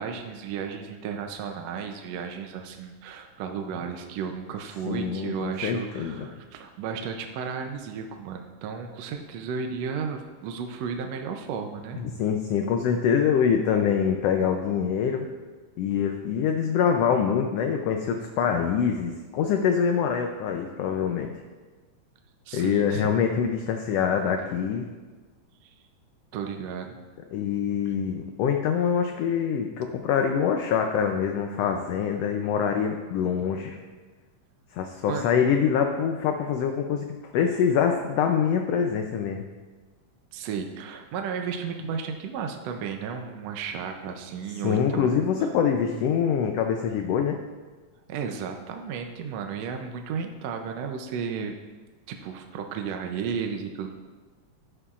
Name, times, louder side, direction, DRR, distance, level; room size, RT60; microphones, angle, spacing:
voice 1, 0.0-12.0 22.5-23.1 25.6-25.7 26.3-27.0 27.9-28.0 35.1-35.3 40.3-45.5 48.1-51.6 52.1-53.9, right 6 dB, 75° right, 4 dB, 1.7 m, -34 dB
voice 2, 4.9-6.3 12.0-15.3 15.8-21.3 22.5-24.9 27.3-33.8 34.7-37.1 37.3-39.4 44.6-47.4, left 7 dB, 75° left, 4 dB, 1.5 m, -25 dB
12.5 x 9.9 x 2.4 m, 1.3 s
omnidirectional pair, 3.4 m